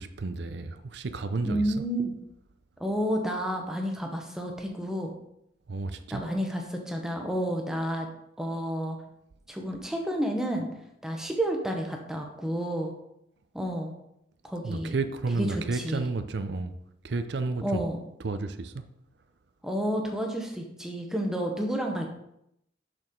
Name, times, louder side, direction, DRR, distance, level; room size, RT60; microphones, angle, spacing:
voice 1, 0.0-1.7 5.7-6.2 14.6-16.7 17.0-17.8 18.2-18.7, right 3 dB, 65° right, 9 dB, 0.5 m, -31 dB
voice 2, 1.4-2.1 2.8-5.1 6.1-8.1 8.4-9.0 9.5-10.7 11.0-12.9 13.5-13.9 14.4-15.0 15.4-16.1 17.6-18.0 19.6-22.1, equal, 5° right, 1 dB, 0.9 m, -30 dB
6.6 x 6.2 x 3.7 m, 0.80 s
head